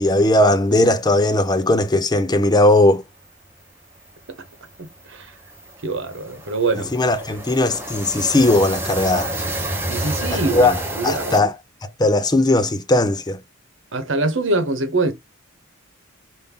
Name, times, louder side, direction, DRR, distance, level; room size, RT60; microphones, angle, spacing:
voice 1, 0.0-3.0 6.9-9.4 10.5-10.7 11.0-11.6 11.8-13.4, left 1 dB, 20° left, 0.6 m, -17 dB
sound 1, 3.0-3.1 3.4-3.6 3.9-11.4, right 1 dB, 10° right, 0.9 m, -29 dB
voice 2, 4.8-5.3 5.8-6.9 7.2-7.3 9.9-11.4 13.9-15.1, right 2 dB, 65° right, 1.2 m, -24 dB
5.3 x 2.7 x 3.5 m
head